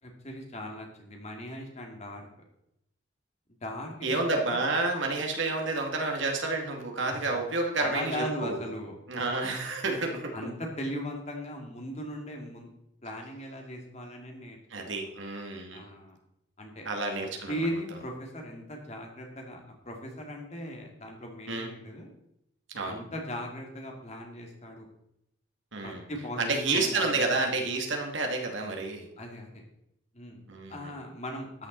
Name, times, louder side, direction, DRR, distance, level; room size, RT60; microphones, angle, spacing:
voice 1, 0.0-2.3 3.6-4.6 7.1-7.4 7.8-9.2 10.3-12.7 13.0-15.1 15.7-16.2 16.6-16.9 17.2-22.1 22.9-24.9 25.8-27.2 27.6-27.7 29.2-29.6 30.1-30.4 30.7-31.7, equal, 35° left, 1 dB, 2.4 m, -38 dB
voice 2, 4.0-8.6 9.1-10.4 14.7-15.8 16.9-17.5 21.5-21.7 22.7-23.0 25.7-26.1 26.4-29.1 30.5-30.9, right 3 dB, 70° right, 2 dB, 2.3 m, -30 dB
13.0 x 9.9 x 4.0 m, 0.80 s
head